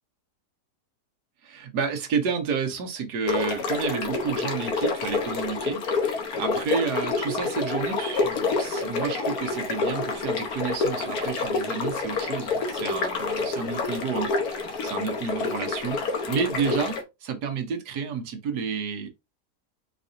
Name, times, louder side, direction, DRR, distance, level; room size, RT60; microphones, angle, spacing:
voice 1, 1.4-19.1, right 6 dB, 80° right, 1.5 m, -30 dB
sound 1, 3.3-17.0, left 4 dB, 70° left, 1.4 m, -28 dB
4.7 x 4.2 x 2.6 m
omnidirectional pair, 1.7 m